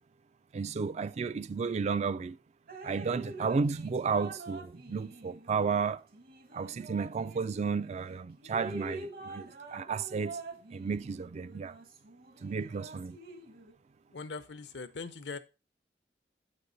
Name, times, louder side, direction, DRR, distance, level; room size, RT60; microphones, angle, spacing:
voice 1, 0.5-2.4 2.8-6.0 6.5-10.4 10.7-11.8 12.4-13.2, right 5 dB, 40° right, 0.3 m, -33 dB
Drip, 2.7-7.9 8.4-13.7, right 2 dB, 60° right, 1.2 m, -46 dB
voice 2, 14.1-15.4, left 4 dB, 80° left, 0.7 m, -41 dB
7.6 x 5.2 x 3.9 m
head